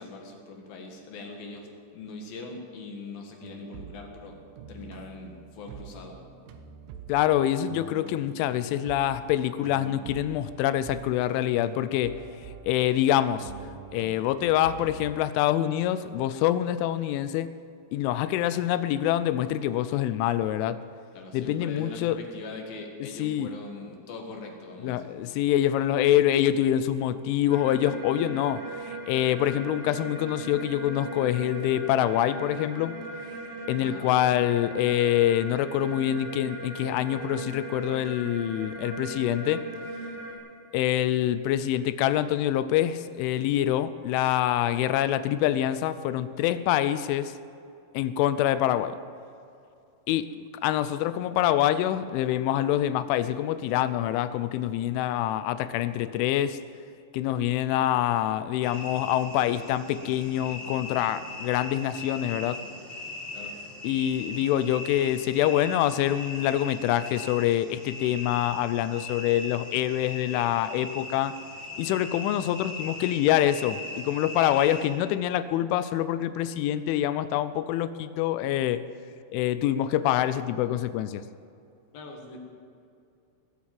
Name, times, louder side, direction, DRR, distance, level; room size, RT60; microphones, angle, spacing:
voice 1, 0.0-1.7 1.9-4.4 4.7-6.2 21.1-25.2 33.8-34.1 63.3-63.5 81.9-82.4, left 3 dB, 60° left, 2 dB, 3.0 m, -41 dB
sound 1, 3.4-15.1, right 7 dB, 85° right, 3.4 m, -46 dB
voice 2, 7.1-12.2 12.7-13.5 13.9-17.5 17.9-20.8 21.3-22.2 23.2-23.5 24.8-32.9 33.7-39.7 40.7-47.3 47.9-49.0 50.1-56.6 57.1-62.6 63.8-71.3 71.8-78.8 79.3-81.2, left 12 dB, 85° left, 13 dB, 3.0 m, -25 dB
sound 2, 27.5-40.4, right 2 dB, 60° right, 4.8 m, -38 dB
sound 3, 58.6-74.9, left 2 dB, ahead, 3.9 m, -40 dB
19.0 x 8.6 x 7.6 m, 2.5 s
omnidirectional pair, 5.5 m